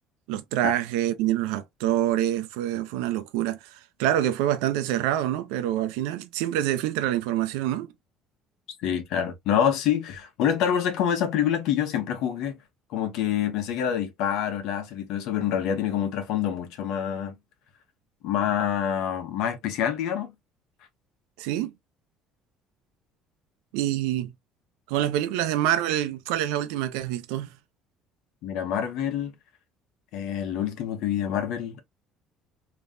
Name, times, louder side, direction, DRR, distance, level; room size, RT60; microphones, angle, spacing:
voice 1, 0.3-7.9 21.4-21.7 23.7-24.3 24.9-27.5, right 12 dB, 90° right, 0.7 m, -26 dB
voice 2, 8.8-12.6 12.9-17.3 18.2-20.3 28.4-29.3 30.1-31.8, left 9 dB, 75° left, 1.1 m, -26 dB
3.4 x 3.1 x 2.6 m
supercardioid pair, 95°, 0 cm